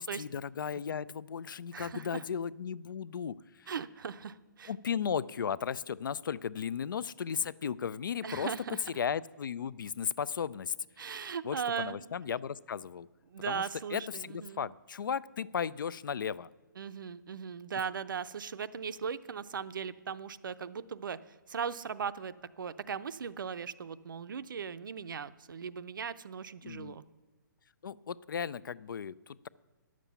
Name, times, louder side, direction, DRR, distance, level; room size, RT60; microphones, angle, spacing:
voice 1, 0.0-3.7 4.7-8.5 9.0-10.7 11.4-13.1 13.5-13.6 13.9-16.5 26.6-27.0 27.8-29.5, left 7 dB, 75° left, 21 dB, 0.4 m, -35 dB
voice 2, 1.7-2.2 3.7-4.7 8.2-8.8 11.0-12.0 13.3-14.7 16.8-27.0, right 6 dB, 75° right, 14 dB, 0.6 m, -38 dB
11.0 x 7.5 x 6.8 m, 1.3 s
hypercardioid pair, 165°, 11 cm